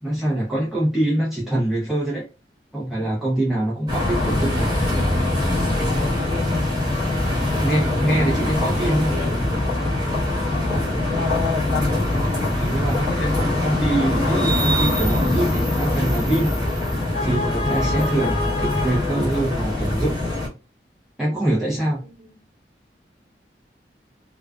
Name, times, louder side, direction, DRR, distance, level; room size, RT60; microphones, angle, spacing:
voice 1, 0.0-2.3 2.7-4.7 7.6-9.1 12.4-16.6 17.2-20.1 21.2-22.0, right 1 dB, ahead, 0.7 m, -24 dB
sound 1, 3.9-20.5, left 1 dB, 25° right, 1.2 m, -22 dB
voice 2, 7.1-7.7 8.7-9.0 10.5-10.9 22.0-22.4, right 1 dB, 50° right, 1.3 m, -42 dB
2.3 x 2.3 x 2.3 m
head